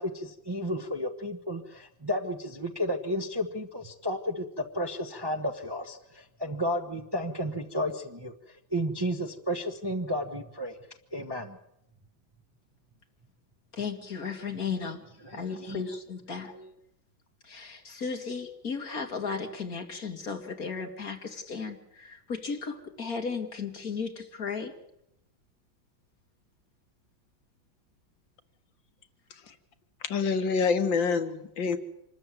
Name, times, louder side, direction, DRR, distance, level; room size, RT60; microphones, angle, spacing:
voice 1, 0.0-8.3 8.7-10.8 11.1-11.6 15.2-15.8 16.5-16.7, equal, 15° right, 4 dB, 1.1 m, -32 dB
voice 2, 13.7-15.0 15.3-16.5 17.4-24.7, left 5 dB, 50° left, 5 dB, 2.8 m, -35 dB
voice 3, 30.0-31.8, left 5 dB, 80° left, 10 dB, 2.0 m, -26 dB
26.5 x 13.5 x 9.5 m, 0.81 s
omnidirectional pair, 2.1 m